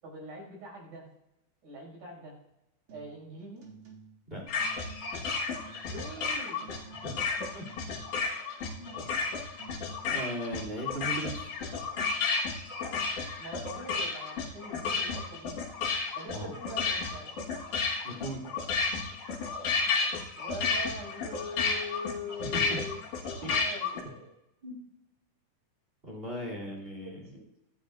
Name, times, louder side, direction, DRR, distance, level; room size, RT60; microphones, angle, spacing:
voice 1, 0.0-1.0 1.6-2.3 2.9-3.7 5.9-6.6 12.7-15.9 16.2-17.3 20.3-24.3 27.0-27.5, left 1 dB, 85° right, -3 dB, 7.2 m, -43 dB
sound 1, 2.9-3.2 3.6-4.3 4.6-5.3 5.6-6.2 6.6-7.3 7.6-8.2 8.6-9.3 9.6-10.3 10.6-10.9, right 5 dB, 40° right, 2.3 m, -52 dB
voice 2, 4.3-4.6 7.0-7.6 8.8-8.9 10.1-11.5 16.3-16.6 18.0-18.5 22.4-22.8 23.4-23.5 24.6-24.7 26.0-27.3, right 1 dB, 20° right, -1 dB, 2.8 m, -38 dB
sound 2, 4.5-24.0, left 4 dB, 85° left, 3.1 m, -32 dB
24.5 x 9.6 x 2.5 m, 0.88 s
omnidirectional pair, 3.5 m